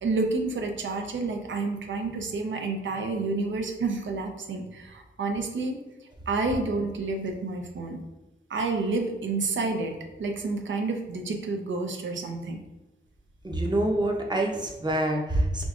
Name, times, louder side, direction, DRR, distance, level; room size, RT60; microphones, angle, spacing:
voice 1, 0.0-5.8 6.3-8.0 8.5-12.6, right 3 dB, 80° right, 3 dB, 0.5 m, -29 dB
voice 2, 13.4-15.6, right 1 dB, 25° right, 0 dB, 0.7 m, -26 dB
5.0 x 2.5 x 2.4 m, 1.1 s
wide cardioid pair, 85°, 19 cm